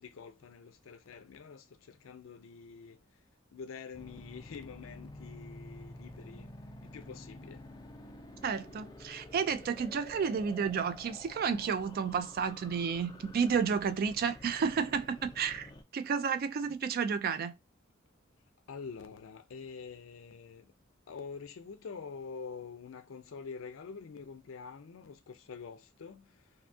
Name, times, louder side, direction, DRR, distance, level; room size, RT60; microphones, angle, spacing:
voice 1, 0.0-3.0 3.5-6.5 6.8-7.7 18.7-20.7 21.1-26.5, left 5 dB, 80° left, 0.4 m, -46 dB
sound 1, 3.9-15.8, left 1 dB, 20° left, 0.4 m, -50 dB
voice 2, 8.4-17.5, right 6 dB, 50° right, 0.3 m, -31 dB
2.6 x 2.3 x 2.5 m
head